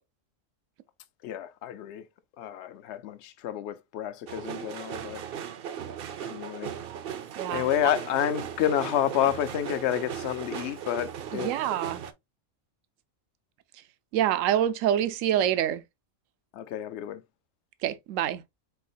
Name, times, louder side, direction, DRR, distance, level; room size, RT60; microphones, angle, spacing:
voice 1, 1.2-2.1 2.4-5.2 6.3-6.8 7.5-11.6 16.5-17.2, left 10 dB, 65° left, 0.9 m, -29 dB
sound 1, 4.3-12.1, right 8 dB, 60° right, 0.7 m, -37 dB
voice 2, 7.4-7.7 11.3-12.0 14.1-15.8 17.8-18.4, right 10 dB, 80° right, 1.0 m, -26 dB
4.6 x 4.1 x 2.6 m
omnidirectional pair, 1.3 m